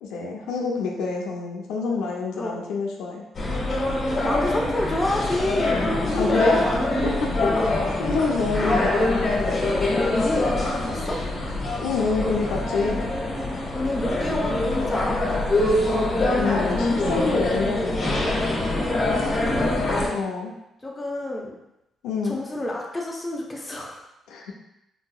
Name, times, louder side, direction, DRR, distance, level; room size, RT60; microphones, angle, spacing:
voice 1, 0.0-3.2 6.1-6.6 6.9-9.5 11.8-13.1 16.3-18.1 20.1-20.5 22.0-22.5 24.3-24.5, left 4 dB, 90° left, -1 dB, 0.5 m, -27 dB
sound 1, 3.3-20.1, left 2 dB, 40° left, 0.9 m, -24 dB
voice 2, 4.2-6.9 7.3-7.8 8.6-8.9 9.9-11.2 13.7-15.2 19.1-20.2 20.8-21.5 22.2-24.0, left 1 dB, 15° left, -2 dB, 0.7 m, -29 dB
3.9 x 2.7 x 2.3 m, 0.86 s
cardioid pair, 90°, 0 cm